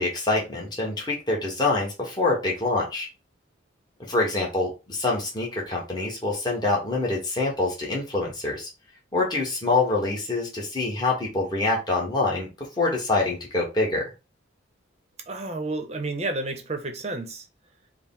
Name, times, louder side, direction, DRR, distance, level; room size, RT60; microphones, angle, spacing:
voice 1, 0.0-3.1 4.1-8.7 9.1-12.5 12.8-14.1, left 2 dB, 20° left, 1.0 m, -25 dB
voice 2, 15.3-17.5, right 2 dB, 30° right, 0.6 m, -31 dB
4.6 x 2.0 x 3.6 m
head